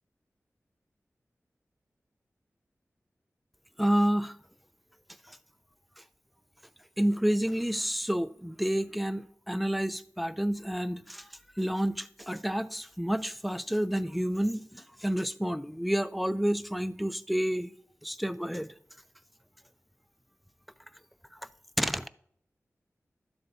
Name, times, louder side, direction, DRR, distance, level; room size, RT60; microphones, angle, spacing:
voice 1, 3.8-4.4 5.3-5.4 7.0-11.3 11.6-17.7 18.0-18.7 21.8-22.1, equal, ahead, 0.4 m, -29 dB
12.0 x 7.3 x 2.7 m
wide cardioid pair, 75°, 5 cm